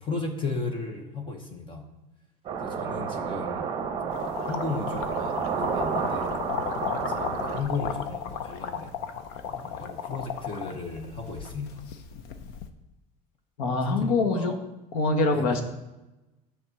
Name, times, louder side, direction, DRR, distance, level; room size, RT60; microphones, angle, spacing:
voice 1, 0.0-1.9 2.6-3.7 4.1-6.3 7.0-9.0 9.5-11.8 13.6-14.1 14.3-14.6 15.3-15.6, left 4 dB, 25° left, 4 dB, 1.2 m, -35 dB
sound 1, 2.4-7.6, right 6 dB, 30° right, 1.1 m, -30 dB
sound 2, 4.1-12.7, left 7 dB, 70° left, 0.8 m, -35 dB
voice 2, 13.6-14.5 14.9-15.6, left 3 dB, 85° left, 6 dB, 1.5 m, -24 dB
9.7 x 4.2 x 7.2 m, 1.0 s
cardioid pair, 160°, 18 cm